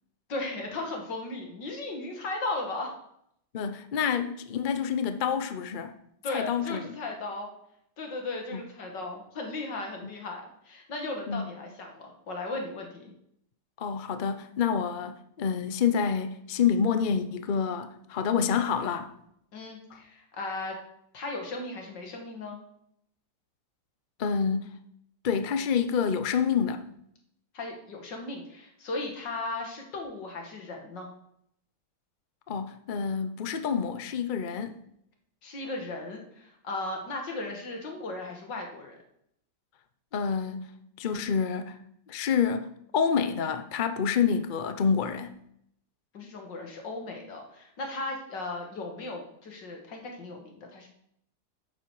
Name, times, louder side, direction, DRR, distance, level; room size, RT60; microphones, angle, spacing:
voice 1, 0.3-3.0 6.2-7.5 8.0-13.1 19.5-20.8 21.1-22.6 27.5-31.1 35.4-39.0 46.1-50.9, left 2 dB, 80° left, 2.7 m, -36 dB
voice 2, 3.5-5.9 6.3-6.9 8.5-8.6 11.3-11.5 13.8-19.1 24.2-24.7 25.2-26.8 32.5-34.8 40.1-40.7 41.0-41.8 42.1-45.3, left 6 dB, 50° left, 0.6 m, -28 dB
11.5 x 8.7 x 4.9 m
omnidirectional pair, 1.9 m